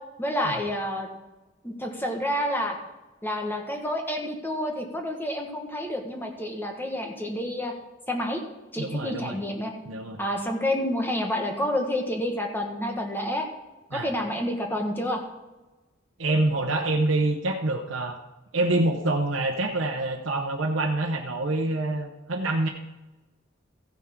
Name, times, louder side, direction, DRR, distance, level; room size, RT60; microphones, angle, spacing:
voice 1, 0.2-1.1 1.6-2.8 3.2-7.7 8.1-8.4 8.7-9.7 10.2-13.5 13.9-15.2, left 1 dB, 10° left, 2 dB, 1.5 m, -29 dB
voice 2, 8.8-9.4 9.9-10.2 13.9-14.1 16.2-18.2 18.5-22.7, right 2 dB, 80° right, 1 dB, 0.9 m, -26 dB
14.5 x 10.0 x 3.7 m, 1.1 s
head